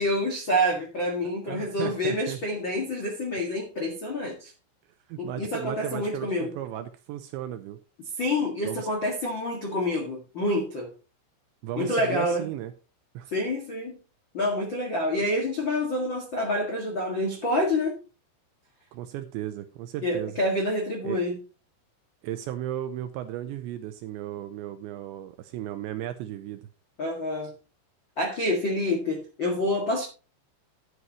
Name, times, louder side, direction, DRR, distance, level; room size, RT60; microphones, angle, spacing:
voice 1, 0.0-4.5 5.2-6.6 8.2-10.9 11.8-12.5 13.3-14.0 14.3-18.0 20.0-21.4 27.0-27.5 28.2-30.1, left 1 dB, 85° left, 1.0 m, -27 dB
voice 2, 1.5-2.4 5.1-7.8 8.6-8.9 11.6-12.7 13.1-13.3 18.9-20.4 21.0-21.2 22.2-26.6, right 12 dB, 85° right, 2.7 m, -35 dB
12.5 x 9.6 x 3.0 m
omnidirectional pair, 5.8 m